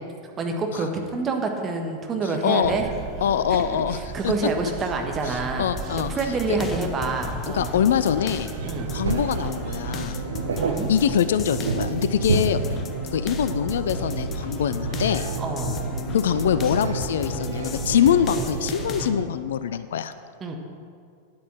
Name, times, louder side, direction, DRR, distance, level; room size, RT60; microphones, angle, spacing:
voice 1, 0.4-2.8 4.1-5.7 6.1-7.7 8.6-8.9 10.5-10.9 15.4-15.8 20.4-20.6, right 3 dB, 25° right, 3 dB, 1.5 m, -27 dB
sound 1, 2.6-10.0, right 8 dB, 40° right, 0.8 m, -38 dB
voice 2, 3.2-4.0 4.2-4.3 5.6-6.1 7.5-8.5 8.9-10.2 10.9-12.6 13.1-15.3 16.1-20.1, left 9 dB, 60° left, 12 dB, 0.4 m, -23 dB
sound 2, 5.8-19.1, left 5 dB, 25° left, 0.9 m, -35 dB
sound 3, 8.5-19.2, right 4 dB, 70° right, 0.8 m, -30 dB
10.0 x 8.4 x 6.0 m, 2.2 s
figure-of-eight pair, 90°, 0 cm